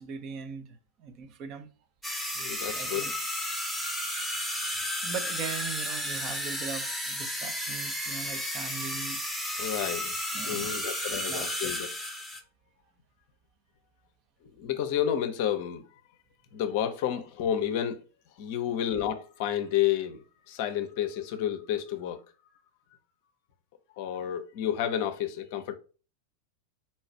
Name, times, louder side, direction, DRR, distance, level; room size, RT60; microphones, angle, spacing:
voice 1, 0.0-1.7 2.7-3.1 5.0-9.2 10.3-10.9 11.3-11.5, right 6 dB, 35° right, 0.6 m, -40 dB
sound 1, 2.0-12.4, equal, 5° right, 0.8 m, -33 dB
voice 2, 2.4-3.1 9.6-10.1 10.5-11.9 14.4-15.8 16.5-18.0 18.4-22.2 24.0-25.7, left 10 dB, 50° left, 0.6 m, -30 dB
4.3 x 2.3 x 4.3 m
figure-of-eight pair, 90°, 0 cm